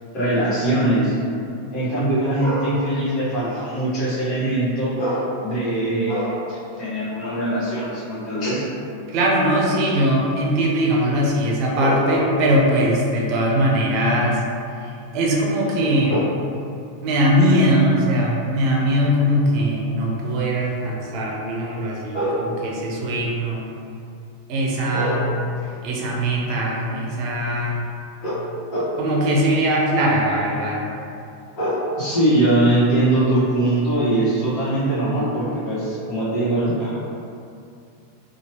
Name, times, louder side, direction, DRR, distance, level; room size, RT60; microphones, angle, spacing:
voice 1, 0.1-1.1 1.7-8.6 11.7-12.6 16.1-16.3 22.1-22.4 24.9-25.2 25.6-25.7 26.1-26.2 28.2-28.4 28.7-29.0 31.5-37.0, right 1 dB, 45° left, -9 dB, 1.2 m, -22 dB
voice 2, 9.1-14.4 14.8-16.2 17.0-22.2 22.6-23.7 24.5-25.5 25.8-27.8 29.0-30.8, equal, 50° right, -2 dB, 0.6 m, -20 dB
3.0 x 2.4 x 2.9 m, 2.5 s
hypercardioid pair, 120°, 0 cm